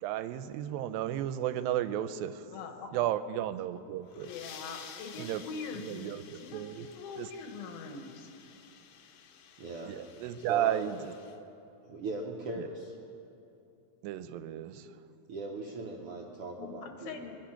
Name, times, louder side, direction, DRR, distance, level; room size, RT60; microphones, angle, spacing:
voice 1, 0.0-2.5 2.9-4.3 5.2-5.4 5.8-6.2 6.5-6.9 7.2-7.3 9.9-11.1 12.6-12.7 14.0-14.9, right 12 dB, 90° right, 12 dB, 2.3 m, -33 dB
voice 2, 2.5-2.9 4.2-8.5 16.6-17.4, left 4 dB, 85° left, 5 dB, 3.2 m, -43 dB
sound 1, 3.9-11.4, left 7 dB, 70° left, 1.8 m, -52 dB
voice 3, 9.6-9.9 10.5-10.9 11.9-12.9 15.3-17.1, right 3 dB, 75° right, -1 dB, 1.3 m, -39 dB
23.5 x 10.5 x 5.8 m, 2.7 s
omnidirectional pair, 4.0 m